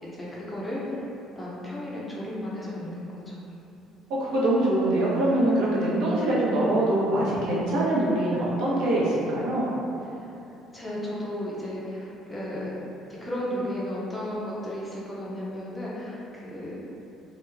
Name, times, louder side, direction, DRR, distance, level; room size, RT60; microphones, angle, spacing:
voice 1, 0.0-0.8 1.4-3.3 10.7-12.8 13.1-16.8, left 1 dB, 10° left, -6 dB, 0.5 m, -34 dB
voice 2, 4.2-9.6, right 1 dB, 75° right, -7 dB, 0.7 m, -23 dB
2.9 x 2.0 x 3.3 m, 2.9 s
cardioid pair, 150°, 0 cm